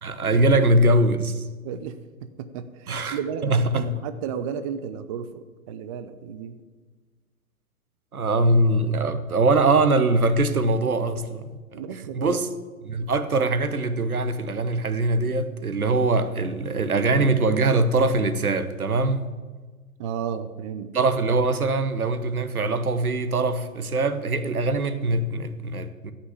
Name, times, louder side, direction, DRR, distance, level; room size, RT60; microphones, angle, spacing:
voice 1, 0.0-1.5 2.9-4.0 8.1-12.5 12.8-19.3 20.9-26.1, right 2 dB, 85° right, 1.1 m, -22 dB
voice 2, 1.6-6.6 11.7-12.4 20.0-20.9, right 7 dB, 25° right, 0.5 m, -33 dB
13.0 x 5.7 x 8.3 m
figure-of-eight pair, 115°, 42 cm